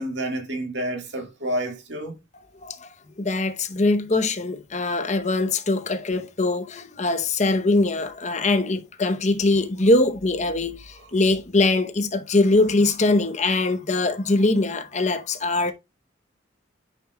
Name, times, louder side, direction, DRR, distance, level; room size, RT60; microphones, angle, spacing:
voice 1, 0.0-2.2, right 1 dB, 70° right, 2.0 m, -29 dB
voice 2, 2.6-15.7, left 2 dB, 40° left, 0.8 m, -22 dB
10.0 x 5.6 x 2.3 m
head